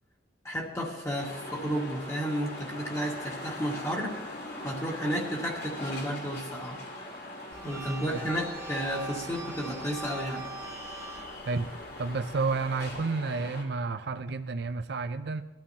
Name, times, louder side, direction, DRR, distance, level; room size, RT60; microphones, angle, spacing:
voice 1, 0.4-4.1 4.6-6.8 7.6-10.5, equal, 15° left, -2 dB, 1.9 m, -32 dB
sound 1, 1.2-13.6, left 1 dB, 55° left, 2.3 m, -41 dB
sound 2, 7.5-13.0, right 4 dB, 15° right, 1.0 m, -43 dB
voice 2, 12.0-15.4, right 4 dB, 60° right, 9 dB, 0.5 m, -30 dB
20.5 x 13.0 x 2.8 m, 1.1 s
head